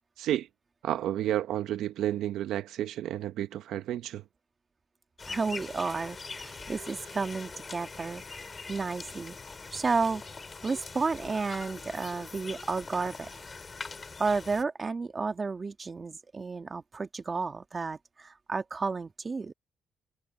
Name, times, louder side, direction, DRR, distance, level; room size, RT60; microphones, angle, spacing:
voice 1, 0.2-0.5 0.8-4.2, right 12 dB, 80° right, 0.7 m, -31 dB
sound 1, 5.2-14.6, left 4 dB, 30° left, 3.8 m, -43 dB
voice 2, 5.3-8.2 8.7-9.4 9.7-10.2 10.6-13.3 14.2-19.5, right 4 dB, 30° right, 1.9 m, -32 dB
cardioid pair, 90°, 0 cm